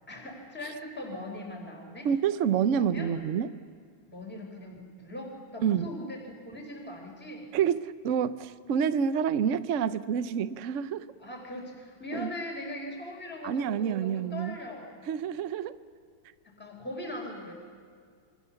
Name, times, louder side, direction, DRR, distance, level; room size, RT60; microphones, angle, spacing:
voice 1, 0.1-2.1 2.7-3.1 4.1-7.5 11.2-15.0 16.4-17.5, left 1 dB, 5° left, 1 dB, 4.0 m, -40 dB
voice 2, 2.0-3.5 5.6-5.9 7.5-11.1 12.1-12.3 13.4-14.6 15.1-15.8, right 8 dB, 60° right, 14 dB, 0.8 m, -28 dB
28.5 x 24.0 x 7.1 m, 2.1 s
omnidirectional pair, 2.4 m